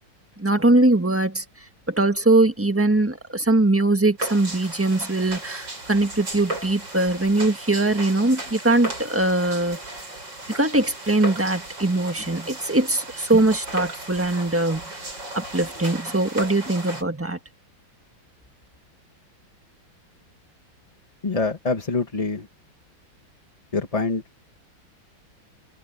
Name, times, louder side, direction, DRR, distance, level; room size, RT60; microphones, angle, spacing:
voice 1, 0.4-1.4 1.9-10.0 10.5-17.4, right 2 dB, 10° right, 1.3 m, -21 dB
sound 1, 4.2-17.0, right 2 dB, 65° right, 7.6 m, -35 dB
voice 2, 21.2-22.5 23.7-24.2, left 3 dB, 20° left, 1.1 m, -25 dB
omnidirectional pair, 2.2 m